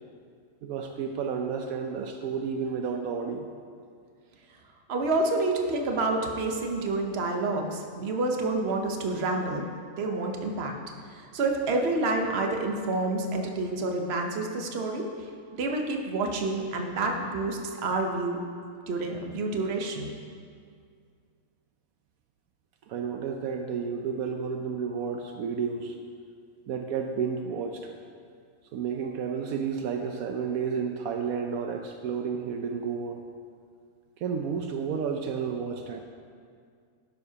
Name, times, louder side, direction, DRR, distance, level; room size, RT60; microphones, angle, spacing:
voice 1, 0.6-3.5 22.9-26.0 26.7-27.9 28.7-33.2 34.2-36.0, right 6 dB, 75° right, 4 dB, 1.0 m, -31 dB
voice 2, 4.9-9.7 10.0-10.7 11.1-15.1 15.6-18.4 18.9-20.1, right 2 dB, 50° right, 2 dB, 1.1 m, -28 dB
12.0 x 10.5 x 2.8 m, 2.2 s
omnidirectional pair, 1.5 m